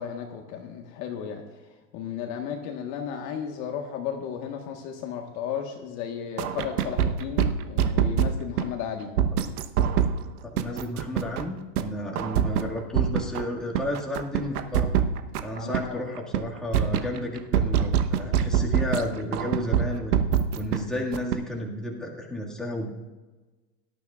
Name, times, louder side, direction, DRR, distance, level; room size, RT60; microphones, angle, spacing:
voice 1, 0.0-1.4 1.9-9.1 15.5-16.0, left 8 dB, 40° left, 3 dB, 1.4 m, -34 dB
sound 1, 6.4-8.7 9.2-10.1 10.6-11.5 11.8-11.9 12.2-13.4 13.7-15.8 16.2-16.4 16.7-19.0 19.3-20.8 21.1-21.4, right 9 dB, 75° right, 1.0 m, -24 dB
voice 2, 10.4-14.9 15.4-20.2 20.5-22.9, left 1 dB, ahead, -4 dB, 1.9 m, -32 dB
18.0 x 12.5 x 2.4 m, 1.2 s
supercardioid pair, 145°, 45 cm